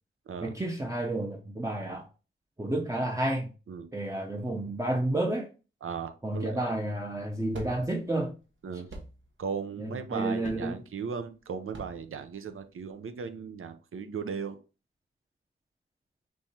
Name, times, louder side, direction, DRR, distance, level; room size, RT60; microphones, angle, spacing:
voice 1, 0.4-2.1 2.6-3.5 3.9-5.5 6.2-8.3 9.8-10.8, right 1 dB, 15° right, 0.6 m, -31 dB
voice 2, 5.8-6.6 8.6-8.9 9.4-14.6, right 6 dB, 85° right, 0.6 m, -37 dB
sound 1, 6.9-12.9, right 2 dB, 70° right, 1.1 m, -48 dB
5.5 x 3.1 x 2.8 m
wide cardioid pair, 80°, 21 cm